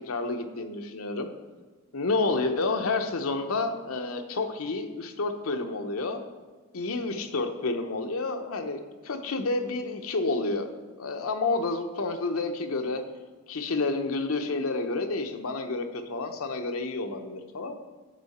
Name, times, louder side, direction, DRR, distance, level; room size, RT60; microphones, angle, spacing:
voice 1, 0.1-1.3 1.9-6.2 6.7-10.7 11.0-13.0 13.5-17.7, left 3 dB, 85° left, 6 dB, 0.8 m, -29 dB
10.5 x 7.2 x 4.2 m, 1.3 s
head